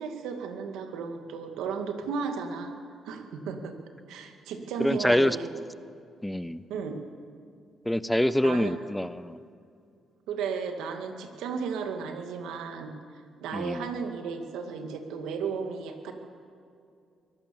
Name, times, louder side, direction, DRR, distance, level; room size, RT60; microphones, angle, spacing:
voice 1, 0.0-2.7 3.0-3.8 4.1-5.5 6.7-7.0 8.4-8.7 10.3-12.9 13.4-16.1, right 5 dB, 90° right, 5 dB, 2.2 m, -34 dB
voice 2, 4.8-5.4 6.2-6.6 7.9-9.4 13.5-13.9, left 1 dB, 5° left, 16 dB, 0.6 m, -25 dB
23.5 x 16.5 x 7.1 m, 2.4 s
cardioid pair, 90°, 0 cm